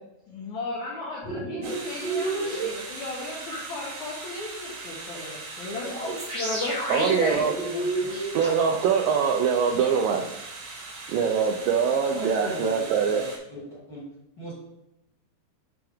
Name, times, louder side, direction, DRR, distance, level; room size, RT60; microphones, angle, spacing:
voice 1, 0.3-6.0 6.3-8.3, left 2 dB, 75° left, -5 dB, 1.7 m, -35 dB
sound 1, 1.2-2.7 3.5-3.6 5.8-8.8, right 2 dB, 20° right, 0.9 m, -30 dB
sound 2, 1.6-13.4, right 3 dB, 65° right, 1.9 m, -40 dB
voice 2, 6.9-7.5 8.3-10.2 11.1-13.2, right 6 dB, 90° right, 3 dB, 1.9 m, -23 dB
voice 3, 12.1-13.6 13.9-14.0 14.4-14.6, equal, 50° left, -7 dB, 1.4 m, -37 dB
8.5 x 3.4 x 3.5 m, 0.86 s
omnidirectional pair, 4.6 m